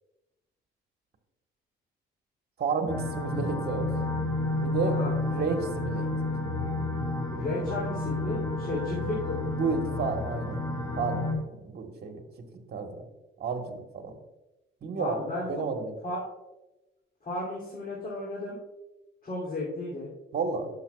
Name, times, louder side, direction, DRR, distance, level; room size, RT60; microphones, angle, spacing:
voice 1, 2.6-3.9 4.6-6.1 7.5-7.6 8.7-8.8 9.5-10.7 11.0-12.2 12.7-13.0 13.4-14.2 14.8-15.1 15.5-15.9 20.3-20.7, right 4 dB, 55° right, 4 dB, 1.5 m, -31 dB
sound 1, 2.9-11.3, left 2 dB, 15° left, 1.8 m, -31 dB
voice 2, 4.8-5.1 7.3-9.6 15.0-15.5 16.0-16.2 17.2-18.6 19.2-20.1, left 2 dB, 45° left, -5 dB, 3.0 m, -34 dB
11.5 x 7.0 x 2.4 m, 1.0 s
cardioid pair, 90°, 20 cm